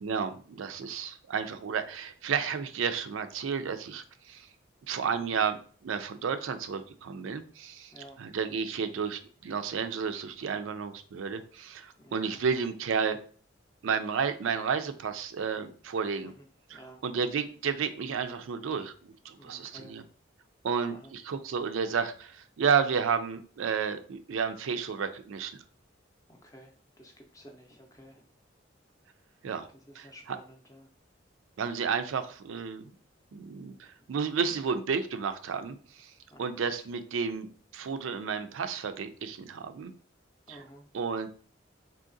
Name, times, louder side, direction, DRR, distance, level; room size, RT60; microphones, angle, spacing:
voice 1, 0.0-4.5 4.9-13.2 13.8-16.3 16.7-20.0 20.6-25.5 29.4-29.7 29.9-30.4 31.6-32.9 33.3-36.1 36.4-39.9 40.5-40.6 40.9-41.3, right 6 dB, 85° right, 9 dB, 0.4 m, -32 dB
voice 2, 7.9-8.2 12.0-12.4 16.2-17.0 19.4-19.9 20.9-21.1 26.3-28.2 29.9-30.9 36.3-36.6 40.5-40.8, equal, 15° left, 3 dB, 0.5 m, -52 dB
3.7 x 2.8 x 2.6 m, 0.43 s
head